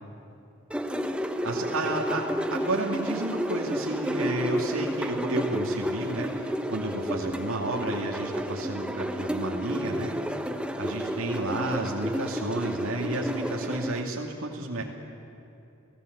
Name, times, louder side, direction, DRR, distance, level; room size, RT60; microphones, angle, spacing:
sound 1, 0.7-14.0, equal, 5° right, 0.8 m, -31 dB
voice 1, 1.4-14.8, right 2 dB, 75° right, 0 dB, 2.4 m, -32 dB
29.5 x 17.0 x 8.1 m, 2.9 s
head